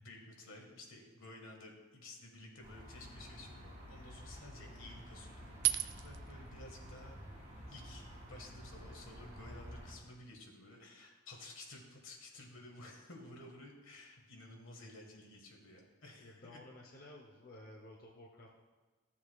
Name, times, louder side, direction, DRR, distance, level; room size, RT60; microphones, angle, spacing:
voice 1, 0.0-7.1 7.7-16.6, left 2 dB, 70° left, 1 dB, 1.5 m, -53 dB
sound 1, 2.6-10.0, equal, 35° right, 2.9 m, -51 dB
sound 2, 5.3-10.6, right 16 dB, 55° right, 0.3 m, -42 dB
voice 2, 16.2-18.5, left 1 dB, 45° left, -1 dB, 0.7 m, -54 dB
13.0 x 7.2 x 2.3 m, 1.3 s
head